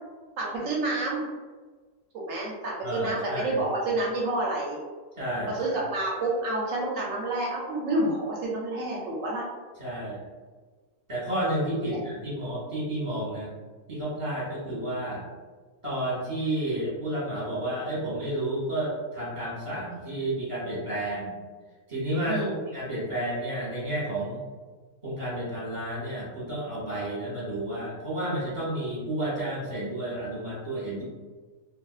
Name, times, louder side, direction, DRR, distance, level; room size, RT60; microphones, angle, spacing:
voice 1, 0.4-1.2 2.1-4.8 5.5-9.5 9.9-10.0 11.8-12.0 22.3-22.6, right 2 dB, 70° right, -4 dB, 0.9 m, -29 dB
voice 2, 2.8-3.6 5.2-5.9 9.8-10.2 11.1-13.5 13.9-15.2 15.8-21.3 21.9-22.4 22.7-24.4 25.0-31.0, right 1 dB, 25° right, -8 dB, 0.9 m, -31 dB
2.5 x 2.3 x 2.3 m, 1.4 s
omnidirectional pair, 1.6 m